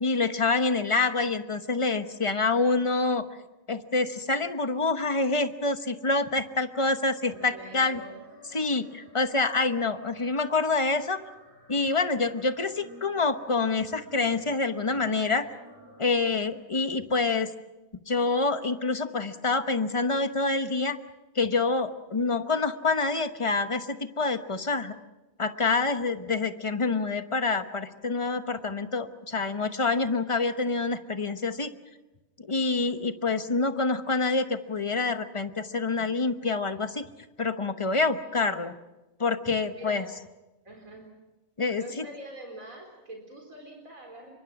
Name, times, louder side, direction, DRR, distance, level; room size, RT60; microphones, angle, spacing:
voice 1, 0.0-3.3 3.7-8.0 8.5-11.2 11.7-15.5 16.0-17.5 18.1-21.0 21.3-24.9 25.4-31.7 32.4-37.1 37.4-38.7 39.2-40.0 41.6-42.0, left 3 dB, 25° left, 9 dB, 0.9 m, -27 dB
sound 1, 7.1-16.4, equal, 15° right, 6.0 m, -51 dB
voice 2, 7.3-8.1 8.5-8.6 39.6-40.1 40.6-41.1 41.7-44.3, right 1 dB, 80° right, 1 dB, 4.6 m, -44 dB
26.5 x 24.0 x 6.0 m, 1.0 s
omnidirectional pair, 1.4 m